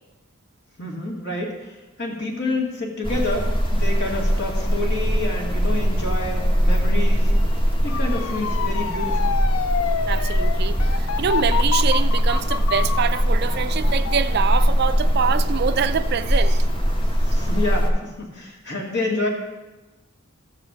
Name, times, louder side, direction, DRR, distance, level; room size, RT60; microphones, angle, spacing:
voice 1, 0.8-7.3 7.8-9.4 17.2-19.3, left 2 dB, 55° left, 2.3 m, -28 dB
sound 1, 3.0-17.9, equal, 25° left, 1.3 m, -21 dB
Motor vehicle (road) / Siren, 7.9-16.8 17.2-17.6, left 7 dB, 90° left, 0.5 m, -30 dB
voice 2, 10.0-16.7, right 6 dB, 50° right, 0.4 m, -25 dB
14.0 x 4.9 x 7.4 m
head